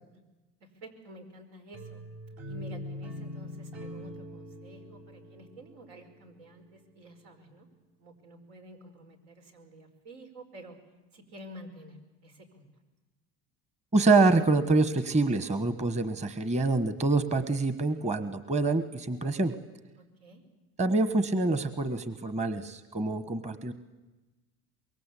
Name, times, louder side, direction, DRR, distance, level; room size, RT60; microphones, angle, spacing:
voice 1, 0.6-2.0 2.5-7.7 8.0-10.8 11.1-12.7 20.0-20.4, right 1 dB, 85° right, 5 dB, 5.3 m, -50 dB
sound 1, 1.7-6.6, left 1 dB, 65° right, 5.6 m, -43 dB
voice 2, 13.9-19.5 20.8-23.7, right 3 dB, 20° right, 12 dB, 1.4 m, -26 dB
24.5 x 22.5 x 8.4 m, 1.1 s
cardioid pair, 125°, 31 cm